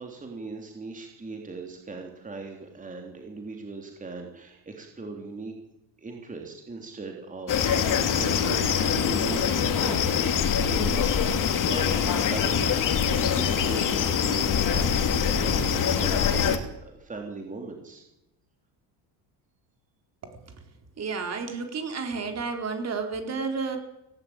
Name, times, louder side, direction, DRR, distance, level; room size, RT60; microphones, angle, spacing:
voice 1, 0.0-5.5 6.0-18.0, right 3 dB, 20° right, 2 dB, 3.5 m, -39 dB
sound 1, 7.5-16.6, left 7 dB, 45° left, 2.8 m, -24 dB
voice 2, 21.0-23.8, right 4 dB, 35° right, 5 dB, 4.2 m, -31 dB
17.5 x 17.5 x 9.0 m, 0.91 s
cardioid pair, 135°, 44 cm